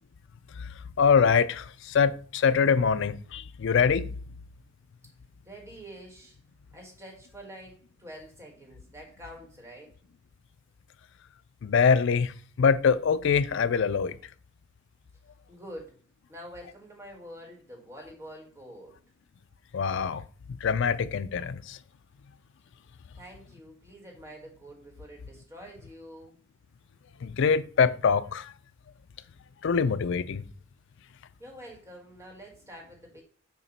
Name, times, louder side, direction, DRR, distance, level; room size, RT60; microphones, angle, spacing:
voice 1, 0.6-4.1 11.6-14.2 19.7-20.2 20.6-21.8 27.2-28.5 29.6-30.4, left 6 dB, 60° left, 0.4 m, -24 dB
voice 2, 5.4-6.4 6.7-9.9 15.5-16.0 16.3-18.9 23.2-26.4 31.4-33.2, equal, 15° right, 1.8 m, -46 dB
7.0 x 2.9 x 5.3 m
head